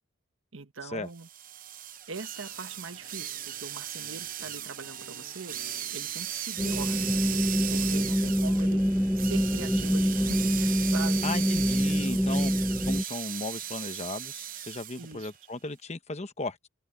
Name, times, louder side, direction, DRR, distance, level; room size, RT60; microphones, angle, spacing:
voice 1, 0.5-1.3 2.1-5.6 5.9-7.3 7.7-11.2 15.0-15.3, right 4 dB, 65° right, 1.3 m, -42 dB
sound 1, 1.2-15.1, right 11 dB, 40° right, 0.8 m, -37 dB
sound 2, 2.3-12.1, left 2 dB, 55° left, 4.6 m, -54 dB
sound 3, 6.6-13.0, equal, ahead, 0.8 m, -26 dB
voice 2, 11.2-12.5 12.9-16.7, left 2 dB, 30° left, 1.1 m, -36 dB
head